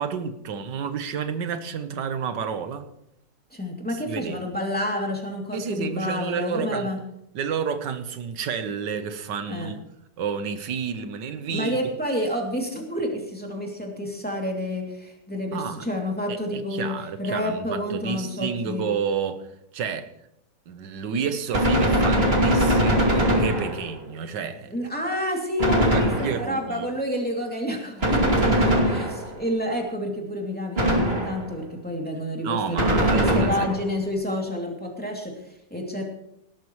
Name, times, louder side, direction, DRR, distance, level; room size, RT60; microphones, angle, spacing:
voice 1, 0.0-2.9 4.1-4.4 5.5-6.9 7.4-9.8 10.2-11.8 15.5-15.8 16.3-19.5 19.7-20.1 20.7-24.8 25.8-26.9 28.6-28.7 32.4-33.7, right 6 dB, 85° right, 1.7 m, -30 dB
voice 2, 3.5-7.0 9.5-9.7 11.5-16.9 17.2-18.8 24.7-36.0, left 1 dB, 5° left, 2.7 m, -29 dB
Gunshot gunfire, 21.5-24.0 25.6-26.6 28.0-29.4 30.8-31.6 32.8-33.9, equal, 35° right, 2.7 m, -21 dB
18.0 x 12.5 x 3.2 m
omnidirectional pair, 1.8 m